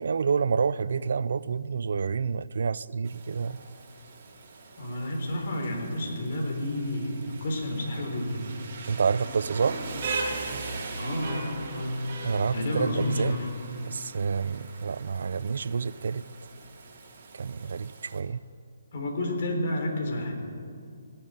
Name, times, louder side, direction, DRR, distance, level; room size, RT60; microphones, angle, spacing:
voice 1, 0.0-3.6 8.9-9.8 12.2-13.3 13.8-16.2 17.3-18.4, right 5 dB, 65° right, 19 dB, 0.4 m, -28 dB
Rain, 3.0-18.2, right 3 dB, 45° right, 3.1 m, -40 dB
voice 2, 4.8-8.5 11.0-12.1 12.5-13.5 18.9-20.3, left 1 dB, 50° left, 2 dB, 3.7 m, -30 dB
17.0 x 7.8 x 9.8 m, 2.3 s
hypercardioid pair, 155°, 0 cm